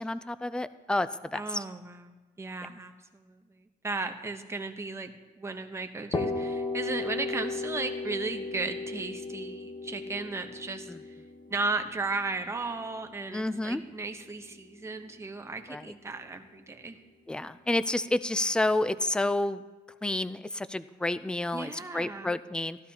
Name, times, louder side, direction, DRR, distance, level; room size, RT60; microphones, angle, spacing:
voice 1, 0.0-1.6 10.9-11.0 13.3-13.8 15.7-15.8 17.3-19.6 20.0-22.8, left 2 dB, 5° left, 14 dB, 0.3 m, -30 dB
voice 2, 1.3-11.2 11.5-17.0 21.5-22.3, right 3 dB, 15° right, 6 dB, 0.8 m, -36 dB
sound 1, 6.1-13.8, left 3 dB, 30° left, 1.0 m, -35 dB
14.5 x 13.0 x 2.8 m, 1.3 s
cardioid pair, 135°, 16 cm